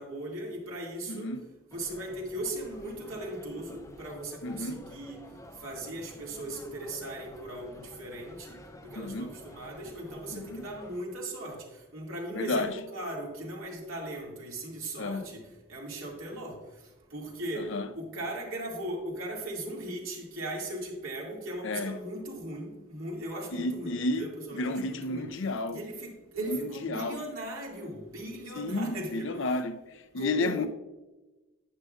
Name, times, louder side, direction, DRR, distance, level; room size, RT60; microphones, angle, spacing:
voice 1, 0.0-1.3 1.7-5.2 5.6-11.7 11.9-15.4 15.7-16.6 17.1-25.3 25.7-29.6 30.2-30.7, right 1 dB, 75° right, 2.3 m, -38 dB
voice 2, 1.1-1.4 4.4-4.8 9.0-9.3 10.3-10.7 12.3-12.7 15.0-15.3 17.6-17.9 21.6-22.0 23.5-24.3 24.6-25.8 26.5-27.2 28.6-30.7, left 2 dB, 60° left, 0.5 m, -32 dB
sound 1, 1.7-11.0, left 1 dB, 15° left, 0.6 m, -50 dB
11.0 x 9.0 x 2.4 m
head